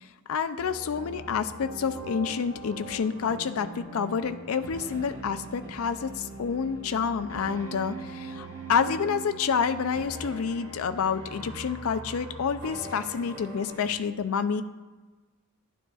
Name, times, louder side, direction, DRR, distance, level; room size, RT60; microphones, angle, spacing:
voice 1, 0.3-14.6, left 6 dB, 70° left, 10 dB, 0.4 m, -28 dB
sound 1, 0.6-13.9, right 2 dB, 60° right, 1.9 m, -41 dB
11.5 x 11.0 x 2.4 m, 1.3 s
head